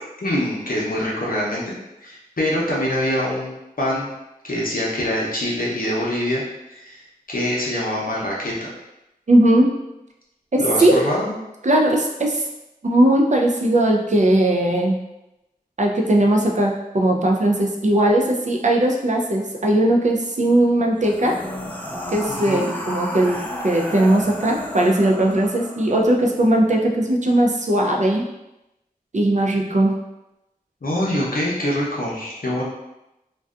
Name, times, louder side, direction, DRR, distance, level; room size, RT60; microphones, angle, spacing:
voice 1, 0.2-1.7 2.0-3.5 3.8-4.1 4.4-6.4 6.7-7.0 7.3-8.7 10.6-11.3 22.4-22.6 30.8-32.6, left 1 dB, 65° left, -4 dB, 0.7 m, -24 dB
voice 2, 9.3-9.7 10.5-11.0 11.6-12.4 12.8-15.0 15.8-21.4 22.1-23.4 23.6-28.3 29.1-29.9, right 1 dB, 50° right, 1 dB, 0.4 m, -18 dB
sound 1, 21.0-26.2, equal, 10° left, 0.4 m, -32 dB
2.6 x 2.2 x 2.3 m, 0.92 s
wide cardioid pair, 45°, 16 cm